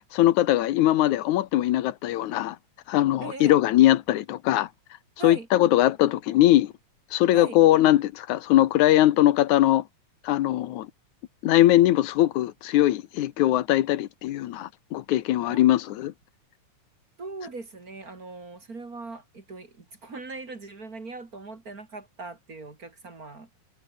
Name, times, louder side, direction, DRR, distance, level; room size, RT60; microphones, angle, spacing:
voice 1, 0.0-2.6 2.9-4.7 5.2-6.7 7.1-9.8 10.2-10.9 11.4-16.1, left 14 dB, 85° left, 2.4 m, -21 dB
voice 2, 3.2-3.6 5.2-5.5 7.3-7.6 15.5-15.8 17.2-23.5, right 3 dB, 30° right, 2.8 m, -40 dB
omnidirectional pair, 3.3 m